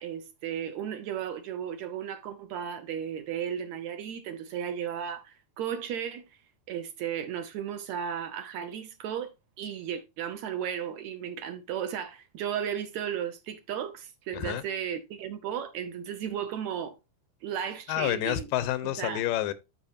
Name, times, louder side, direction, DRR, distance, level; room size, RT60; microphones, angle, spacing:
voice 1, 0.0-6.4 6.7-17.0 17.4-18.5 18.8-19.2, right 9 dB, 70° right, 2.0 m, -35 dB
voice 2, 17.9-19.5, left 13 dB, 90° left, 2.5 m, -29 dB
12.5 x 5.7 x 2.7 m
omnidirectional pair, 3.8 m